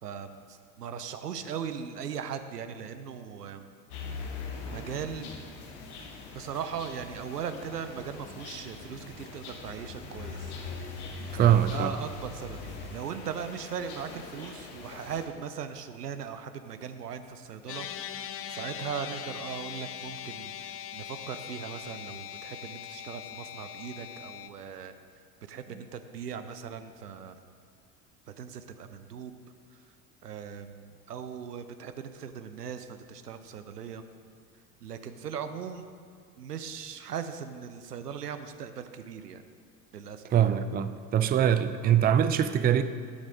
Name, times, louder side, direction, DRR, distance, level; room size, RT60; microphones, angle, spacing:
voice 1, 0.0-3.7 4.7-5.3 6.3-10.5 11.4-24.9 25.5-27.4 28.3-29.3 30.2-34.0 34.8-35.9 36.4-39.4 39.9-40.2, right 7 dB, 90° right, 10 dB, 0.6 m, -39 dB
sound 1, 3.9-15.3, left 4 dB, 70° left, 1.4 m, -42 dB
voice 2, 11.3-11.9 40.3-42.8, right 9 dB, 20° right, 11 dB, 0.4 m, -23 dB
sound 2, 17.7-24.5, left 10 dB, 30° left, 0.5 m, -41 dB
11.5 x 6.3 x 5.1 m, 2.2 s
figure-of-eight pair, 65°, 46 cm